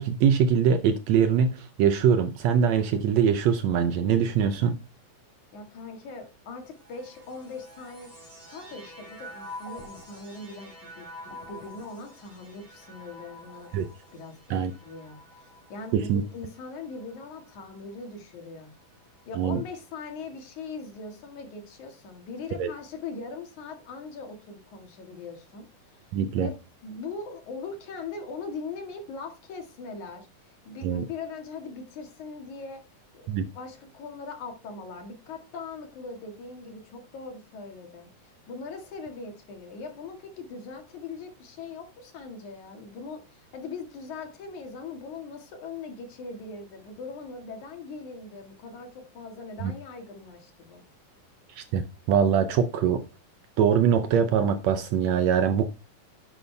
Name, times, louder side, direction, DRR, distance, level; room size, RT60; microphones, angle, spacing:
voice 1, 0.0-4.8 13.7-13.9 14.5-14.7 15.9-16.2 19.4-19.6 22.6-22.7 26.1-26.5 30.8-31.1 33.3-33.5 49.6-49.7 51.6-53.0 53.6-55.7, right 7 dB, 70° right, 1.8 m, -23 dB
voice 2, 5.5-13.7 14.1-14.4 14.8-18.7 19.3-25.7 26.4-26.5 26.8-32.8 33.1-50.8, left 4 dB, 70° left, 3.3 m, -40 dB
sound 1, 6.6-18.1 18.8-19.6, left 1 dB, 10° right, 4.6 m, -48 dB
11.0 x 8.3 x 3.4 m
omnidirectional pair, 3.6 m